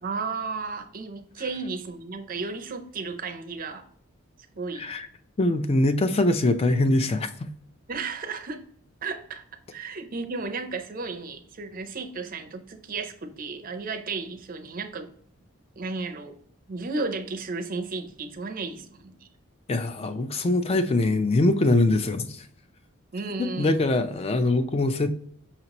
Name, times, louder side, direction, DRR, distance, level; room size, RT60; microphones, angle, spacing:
voice 1, 0.0-3.8 4.6-4.8 7.9-8.6 9.0-9.4 9.7-15.1 15.8-16.3 16.7-19.3 23.1-23.9, right 4 dB, 40° right, 0.5 m, -33 dB
voice 2, 5.4-7.5 19.7-22.4 23.4-25.1, left 2 dB, 25° left, 0.3 m, -23 dB
5.8 x 2.9 x 2.8 m
head